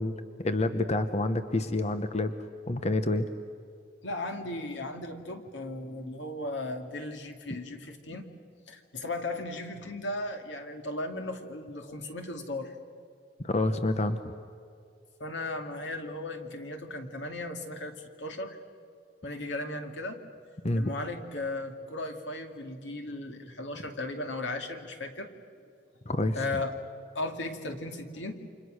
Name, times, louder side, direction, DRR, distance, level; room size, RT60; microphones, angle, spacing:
voice 1, 0.0-2.3 2.7-3.3 13.4-14.2 20.6-20.9 26.1-26.4, left 2 dB, 35° left, 9 dB, 0.9 m, -28 dB
voice 2, 4.0-8.2 8.7-12.8 15.2-18.6 19.2-20.2 20.7-25.3 26.3-26.8 27.1-28.3, left 2 dB, 85° left, 5 dB, 2.4 m, -36 dB
29.5 x 26.5 x 6.4 m, 2.4 s
head